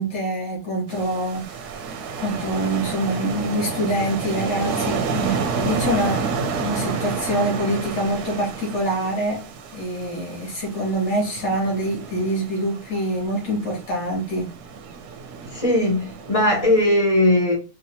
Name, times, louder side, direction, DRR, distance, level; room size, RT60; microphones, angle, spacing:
voice 1, 0.0-1.8 2.2-6.2 6.6-9.4 9.7-14.5, right 1 dB, 85° left, 2.4 m, -25 dB
sound 1, 0.9-16.9, right 5 dB, 75° right, 1.1 m, -30 dB
voice 2, 15.5-17.6, left 1 dB, 25° left, 1.2 m, -19 dB
4.6 x 2.8 x 2.8 m
omnidirectional pair, 1.8 m